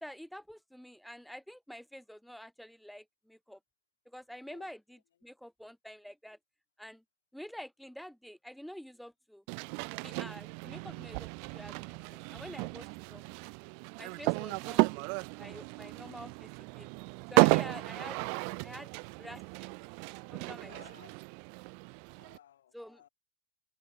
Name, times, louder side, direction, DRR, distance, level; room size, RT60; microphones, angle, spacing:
voice 1, 0.0-3.6 4.1-6.4 6.8-7.0 7.3-9.4 10.0-13.2 14.0-14.8 15.4-16.5 16.8-16.9 17.3-18.2 18.6-18.9 19.2-19.7 20.3-20.7 22.7-23.0, equal, ahead, 2.8 m, -47 dB
sound 1, 9.5-22.4, right 40 dB or more, 45° right, 0.4 m, -33 dB
voice 2, 17.6-18.0 20.7-21.1 22.1-23.1, left 11 dB, 60° left, 6.9 m, -57 dB
figure-of-eight pair, 90°, 0 cm